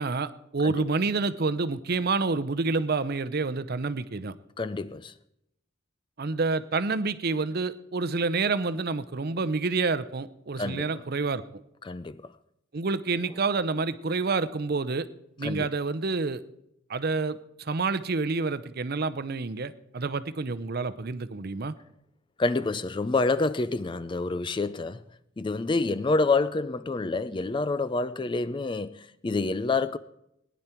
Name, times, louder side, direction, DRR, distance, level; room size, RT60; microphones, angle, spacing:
voice 1, 0.0-4.3 6.2-11.4 12.7-15.1 15.4-16.4 16.9-21.7, right 3 dB, 50° right, 0.6 m, -28 dB
voice 2, 4.6-5.1 10.6-10.9 11.8-12.2 15.4-15.7 22.4-25.0 25.4-30.0, left 3 dB, 25° left, 0.4 m, -27 dB
19.0 x 10.5 x 4.4 m
head